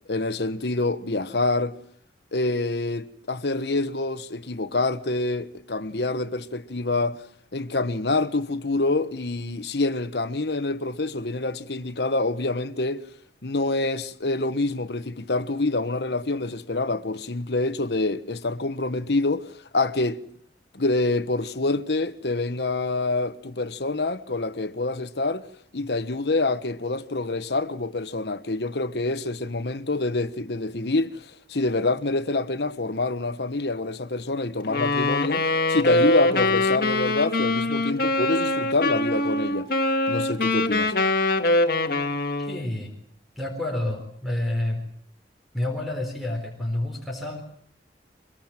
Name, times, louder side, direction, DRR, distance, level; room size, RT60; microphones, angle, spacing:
voice 1, 0.1-1.8 2.3-7.2 7.5-13.0 13.4-20.2 20.7-25.5 25.7-39.7 40.1-40.9, left 2 dB, 70° left, 1.2 m, -26 dB
Wind instrument woodwind instrument, 34.6-42.6, left 2 dB, 55° left, 1.9 m, -23 dB
voice 2, 42.4-42.9 43.4-44.8 45.5-47.4, left 1 dB, ahead, 4.0 m, -29 dB
24.0 x 23.0 x 7.4 m
head